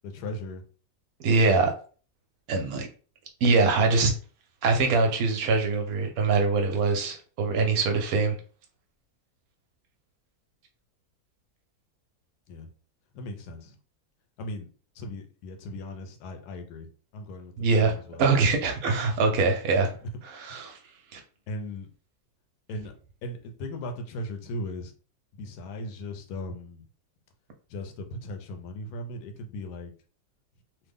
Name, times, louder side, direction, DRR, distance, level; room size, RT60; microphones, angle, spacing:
voice 1, 0.0-0.6 12.5-12.7 13.1-13.8 14.4-14.7 14.9-18.2 19.8-20.1 20.5-20.6 21.5-21.9 22.7-22.9 23.2-24.9 25.3-26.8 27.7-29.9, left 1 dB, 75° left, 5 dB, 1.1 m, -38 dB
voice 2, 1.2-1.7 2.5-2.9 3.4-4.1 4.6-8.4 17.6-17.9 18.2-19.9 20.3-20.8 21.1-21.2, right 4 dB, 70° right, 4 dB, 1.0 m, -23 dB
3.1 x 2.2 x 3.4 m, 0.39 s
omnidirectional pair, 1.7 m